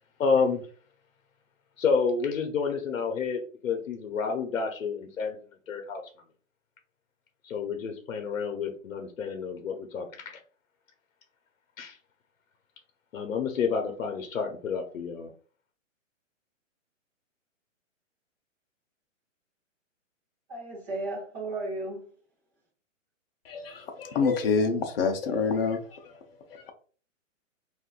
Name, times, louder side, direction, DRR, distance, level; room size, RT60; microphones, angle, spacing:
voice 1, 0.2-0.6 1.8-5.4 5.7-6.0 7.4-10.4 11.8-12.0 13.1-15.3, left 5 dB, 80° left, 0.8 m, -29 dB
voice 2, 20.5-22.1, right 2 dB, 15° right, 0.8 m, -34 dB
voice 3, 23.4-26.2 26.5-26.7, left 5 dB, 45° left, 0.6 m, -27 dB
3.7 x 2.5 x 2.4 m
hypercardioid pair, 170°, 39 cm